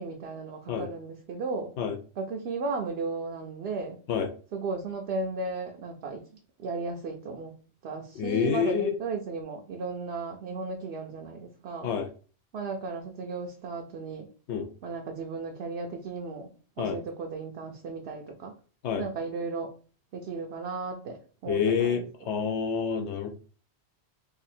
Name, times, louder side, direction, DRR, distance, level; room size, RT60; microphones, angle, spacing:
voice 1, 0.0-1.7 2.2-4.0 4.5-6.2 6.6-7.5 7.8-11.9 12.5-14.3 14.8-16.5 16.8-18.5 19.0-19.7 20.1-22.0, right 4 dB, 70° right, 1 dB, 0.8 m, -35 dB
voice 2, 8.2-8.9 11.8-12.1 14.5-14.7 16.8-17.0 18.8-19.0 21.5-23.3, left 7 dB, 80° left, 5 dB, 0.9 m, -28 dB
2.8 x 2.6 x 4.1 m, 0.38 s
omnidirectional pair, 1.1 m